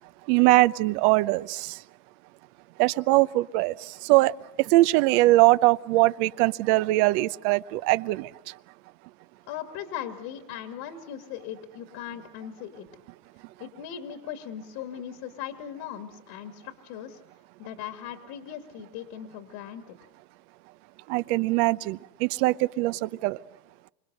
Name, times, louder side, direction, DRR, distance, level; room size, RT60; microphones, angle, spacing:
voice 1, 0.3-1.8 2.8-4.3 4.6-8.3 21.1-23.4, right 20 dB, 60° right, 17 dB, 0.9 m, -22 dB
voice 2, 9.5-12.9 13.6-17.2 17.6-20.0, left 10 dB, 60° left, 6 dB, 2.2 m, -39 dB
28.0 x 25.5 x 6.6 m, 0.89 s
supercardioid pair, 110°, 49 cm